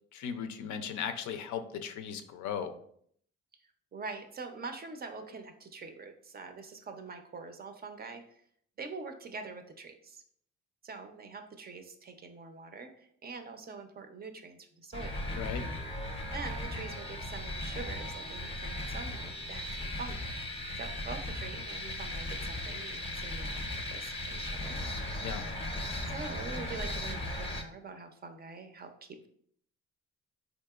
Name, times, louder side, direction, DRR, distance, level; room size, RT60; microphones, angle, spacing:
voice 1, 0.1-2.7 15.3-15.6 25.2-25.4, left 7 dB, 70° left, 8 dB, 0.5 m, -37 dB
voice 2, 3.9-8.2 8.8-10.2 10.8-15.2 16.3-20.3 20.7-24.8 26.0-29.3, right 4 dB, 30° right, 6 dB, 0.4 m, -44 dB
sound 1, 14.9-27.6, left 1 dB, 20° left, 0.5 m, -37 dB
3.7 x 2.8 x 2.3 m, 0.65 s
cardioid pair, 90°, 30 cm